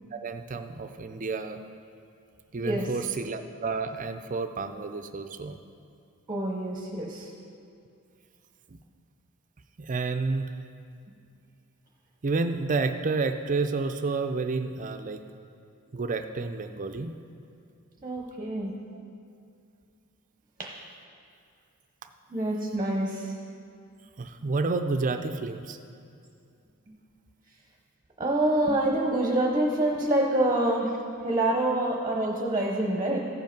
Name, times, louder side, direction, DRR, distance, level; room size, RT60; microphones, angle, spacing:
voice 1, 0.1-1.6 2.5-5.6 8.7-8.8 9.8-10.6 12.2-15.2 15.9-17.1 24.2-25.8, right 3 dB, 35° right, 8 dB, 0.5 m, -30 dB
voice 2, 6.3-7.3 18.0-18.7 20.6-20.7 22.3-23.3 28.2-30.9 31.2-33.2, right 1 dB, 20° right, 0 dB, 0.9 m, -26 dB
14.5 x 5.4 x 5.2 m, 2.5 s
head